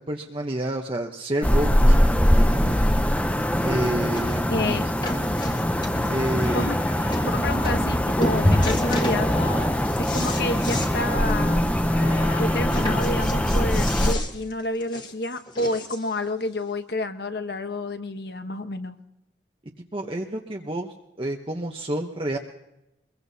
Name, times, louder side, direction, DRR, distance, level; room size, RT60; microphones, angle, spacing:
voice 1, 0.1-2.8 3.6-4.8 5.1-5.2 6.1-6.6 19.9-22.4, right 1 dB, 30° right, 2 dB, 0.8 m, -29 dB
sound 1, 1.4-14.1, equal, 10° left, 0.6 m, -22 dB
sound 2, 3.4-3.5 4.2-4.4 4.7-6.3 6.8-6.9 7.1-7.3 7.6-8.0 8.2-9.2 9.6-10.9 11.3-11.4 11.7-11.8 12.7-16.2 17.0-17.1, left 1 dB, 25° left, 1.4 m, -33 dB
voice 2, 4.5-4.8 6.5-6.8 7.2-9.3 10.0-11.7 12.4-19.0, left 2 dB, 60° left, 8 dB, 1.0 m, -29 dB
Singing, 6.3-12.8, left 2 dB, 75° left, 6.8 m, -39 dB
23.0 x 22.0 x 2.7 m, 0.89 s
head